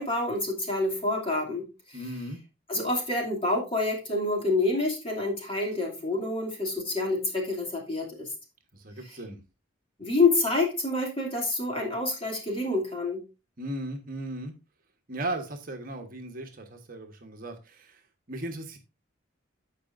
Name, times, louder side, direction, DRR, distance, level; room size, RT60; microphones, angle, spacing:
voice 1, 0.0-2.0 2.7-8.3 10.0-13.2, left 2 dB, 25° left, 2.6 m, -27 dB
voice 2, 1.9-2.4 8.7-9.4 13.6-14.5 15.1-18.0 18.3-18.8, right 1 dB, 45° right, 1.2 m, -37 dB
15.0 x 5.0 x 2.6 m
head